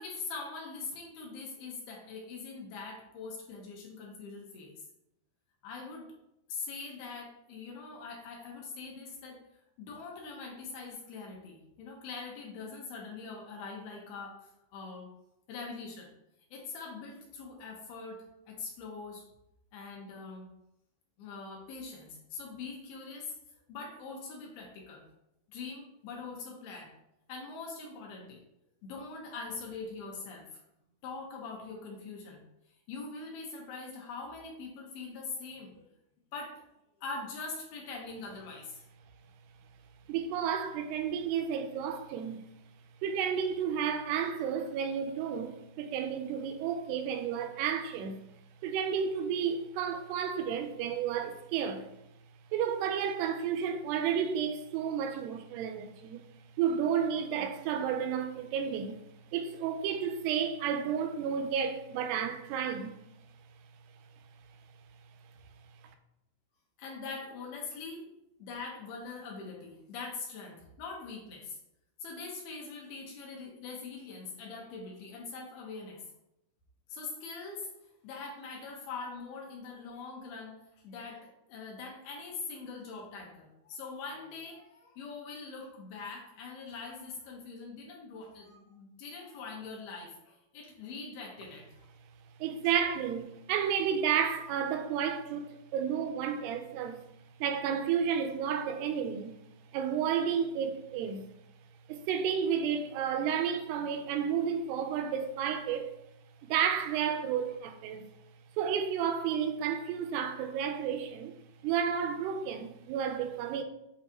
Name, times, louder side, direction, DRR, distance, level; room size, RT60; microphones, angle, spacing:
voice 1, 0.0-4.8 5.6-6.1 6.5-9.4 9.8-15.1 15.5-16.1 16.5-19.3 19.7-20.5 21.2-23.4 23.7-25.1 25.5-26.9 27.3-28.4 28.8-30.5 31.0-32.4 32.9-35.8 36.3-36.6 37.0-38.8 66.8-68.1 68.4-71.6 72.0-76.0 76.9-77.7 78.0-80.6 80.8-91.7, left 4 dB, 75° left, 2.7 m, -43 dB
voice 2, 40.1-42.4 43.0-48.2 48.6-51.9 52.5-56.2 56.6-59.0 59.3-63.0 92.4-97.0 97.4-99.4 99.7-101.2 101.9-105.9 106.4-108.1 108.6-111.3 111.6-113.6, right 7 dB, 80° right, 2.6 m, -31 dB
8.3 x 3.9 x 2.9 m
omnidirectional pair, 4.8 m